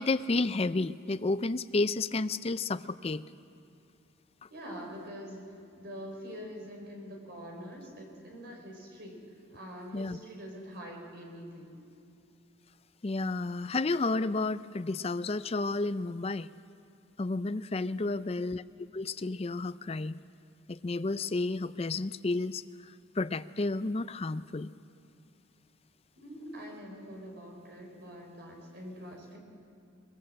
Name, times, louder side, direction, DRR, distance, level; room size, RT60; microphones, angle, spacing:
voice 1, 0.0-3.2 9.9-10.2 13.0-16.5 17.2-18.6 18.9-20.2 20.7-24.7, left 3 dB, 30° left, 13 dB, 0.5 m, -31 dB
voice 2, 4.5-9.2 9.5-11.8 17.9-18.3 26.1-29.4, equal, 50° right, 1 dB, 5.0 m, -45 dB
22.0 x 21.5 x 7.7 m, 2.6 s
head